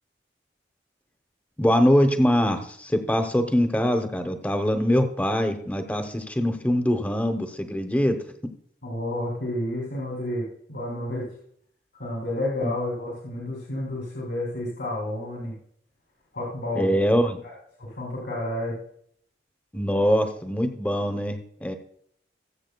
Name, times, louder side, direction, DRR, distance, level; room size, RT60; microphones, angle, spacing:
voice 1, 1.6-8.2 12.6-12.7 16.7-17.4 19.7-21.7, equal, 10° left, 7 dB, 0.8 m, -23 dB
voice 2, 8.8-11.3 12.0-15.5 16.3-17.0 17.8-18.8, left 1 dB, 85° left, -3 dB, 2.9 m, -30 dB
20.0 x 7.5 x 2.3 m, 0.65 s
head